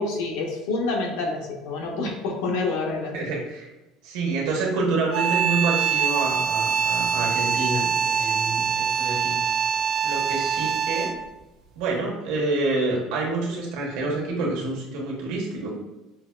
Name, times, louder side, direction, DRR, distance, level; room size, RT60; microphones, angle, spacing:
voice 1, 0.0-3.1, left 3 dB, 80° left, 1 dB, 0.8 m, -27 dB
voice 2, 3.1-3.7 4.0-9.5 10.0-11.1 11.8-15.7, right 3 dB, 80° right, -2 dB, 1.1 m, -27 dB
sound 1, 5.1-11.3, right 6 dB, 50° right, 0.4 m, -24 dB
5.7 x 2.2 x 2.4 m, 1.0 s
cardioid pair, 155°, 0 cm